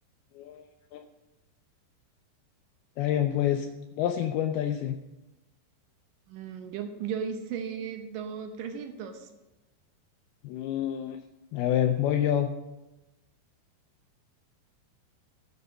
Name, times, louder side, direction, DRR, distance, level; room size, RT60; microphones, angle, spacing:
voice 1, 3.0-3.7 4.0-5.0 10.4-11.2 11.5-12.5, left 11 dB, 85° left, 6 dB, 2.2 m, -27 dB
voice 2, 6.3-9.3, right 7 dB, 80° right, 6 dB, 2.0 m, -36 dB
13.5 x 7.0 x 6.3 m, 1.0 s
omnidirectional pair, 5.1 m